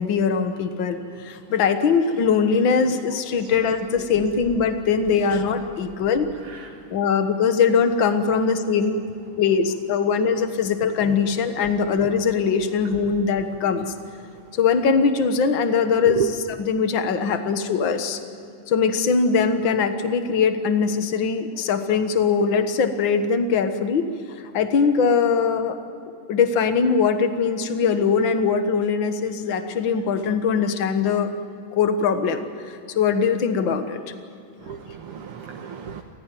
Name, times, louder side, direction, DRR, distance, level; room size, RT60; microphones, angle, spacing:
voice 1, 0.0-6.3 6.9-9.0 9.4-13.9 14.6-18.2 18.7-24.1 24.5-25.8 26.3-31.3 31.7-32.4 33.0-34.0, left 5 dB, 60° left, 8 dB, 2.1 m, -21 dB
voice 2, 34.7-36.0, right 7 dB, 85° right, 2 dB, 2.3 m, -31 dB
28.5 x 16.5 x 9.2 m, 2.6 s
omnidirectional pair, 2.4 m